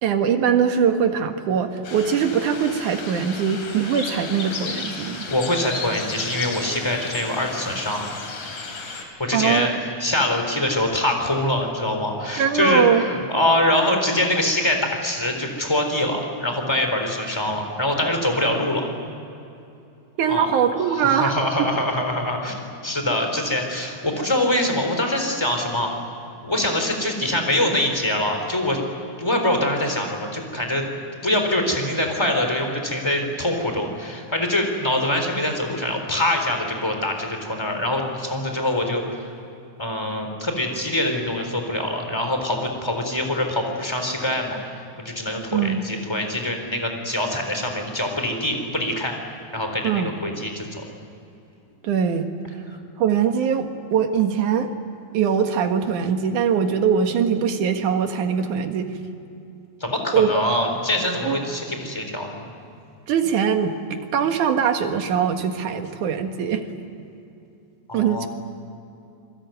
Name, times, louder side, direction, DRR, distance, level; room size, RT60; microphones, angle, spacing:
voice 1, 0.0-5.3 9.3-9.7 12.4-13.0 20.2-21.3 21.6-21.7 45.5-45.8 49.8-50.1 51.8-52.3 53.0-54.7 55.1-58.9 60.1-60.3 61.2-61.4 63.1-66.6 67.9-68.3, right 7 dB, 80° right, 6 dB, 3.1 m, -22 dB
sound 1, 1.8-9.0, left 4 dB, 80° left, 4.7 m, -34 dB
voice 2, 5.3-8.0 9.2-9.7 10.0-18.9 20.3-20.5 20.7-25.9 26.4-28.8 29.2-30.8 31.2-39.3 39.8-44.6 45.0-49.1 49.5-50.8 59.8-62.5 67.9-68.3, left 1 dB, 10° left, 4 dB, 3.7 m, -24 dB
28.0 x 22.0 x 9.2 m, 2.7 s
omnidirectional pair, 3.5 m